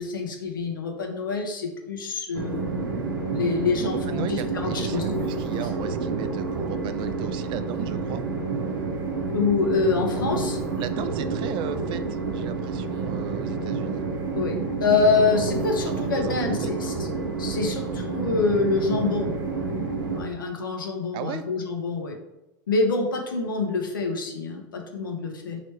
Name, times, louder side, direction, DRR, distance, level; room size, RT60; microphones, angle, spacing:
voice 1, 0.0-5.0 5.6-5.7 9.3-10.6 14.3-17.1 17.4-19.3 20.1-22.2 22.7-25.6, left 4 dB, 90° left, 2 dB, 0.9 m, -26 dB
Train, 2.3-20.2, right 4 dB, 90° right, 0.8 m, -29 dB
voice 2, 3.7-8.2 10.8-12.0 12.3-14.0 15.9-16.4 16.6-16.7 21.1-21.4, right 9 dB, 50° right, 10 dB, 0.4 m, -35 dB
3.3 x 3.0 x 4.5 m, 0.95 s
hypercardioid pair, 90°, 11 cm